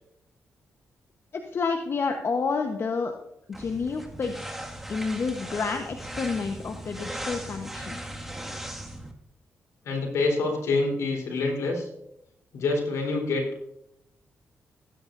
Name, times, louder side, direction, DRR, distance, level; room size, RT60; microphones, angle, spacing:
voice 1, 1.3-3.2 3.6-4.6 4.9-8.0, left 4 dB, 55° left, 5 dB, 1.0 m, -29 dB
sound 1, 3.5-9.1, right 1 dB, 5° right, 1.9 m, -38 dB
voice 2, 9.9-11.9 12.5-13.5, left 3 dB, 75° left, 1 dB, 3.7 m, -26 dB
18.5 x 9.6 x 2.6 m, 0.81 s
supercardioid pair, 55°, 5 cm